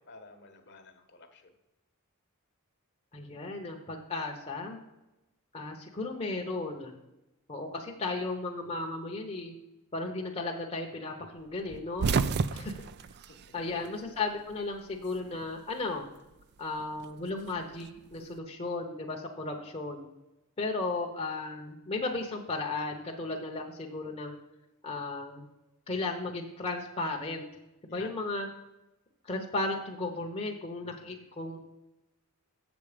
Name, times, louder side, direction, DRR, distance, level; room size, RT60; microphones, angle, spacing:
voice 1, 0.0-1.5 13.3-13.4 13.6-14.0 19.5-19.7 23.3-23.4 27.9-28.1 31.0-31.3, left 3 dB, 50° left, 6 dB, 1.1 m, -53 dB
voice 2, 3.1-4.8 5.5-7.0 7.5-9.5 9.9-12.1 12.5-12.7 13.5-16.0 16.6-20.1 20.6-24.3 24.8-25.5 25.9-27.4 27.9-28.5 29.2-31.6, left 3 dB, 30° left, 0 dB, 0.9 m, -35 dB
sound 1, 11.7-14.2 14.5-15.6 16.8-18.2, right 5 dB, 50° right, 0.4 m, -32 dB
7.4 x 7.1 x 5.0 m, 0.97 s
head